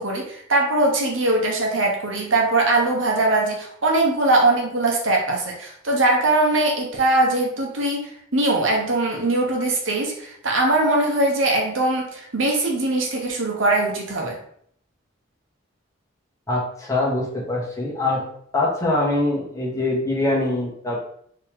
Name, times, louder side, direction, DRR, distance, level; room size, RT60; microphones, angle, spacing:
voice 1, 0.0-14.4, right 2 dB, 75° right, 0 dB, 1.1 m, -21 dB
voice 2, 16.5-18.2 18.5-21.0, left 2 dB, 15° left, -4 dB, 1.3 m, -23 dB
4.5 x 3.1 x 3.5 m, 0.66 s
head